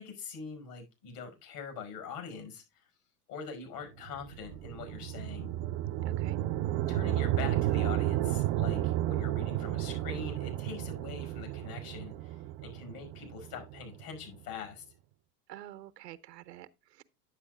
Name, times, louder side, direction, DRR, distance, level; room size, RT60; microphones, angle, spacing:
voice 1, 0.0-2.8 3.3-5.5 6.9-14.8, left 6 dB, 70° left, 5.5 m, -43 dB
sound 1, 4.0-14.3, right 14 dB, 45° right, 0.6 m, -32 dB
voice 2, 6.0-6.4 15.5-17.0, right 13 dB, 75° right, 0.9 m, -48 dB
10.0 x 8.0 x 2.3 m
hypercardioid pair, 85°, 49 cm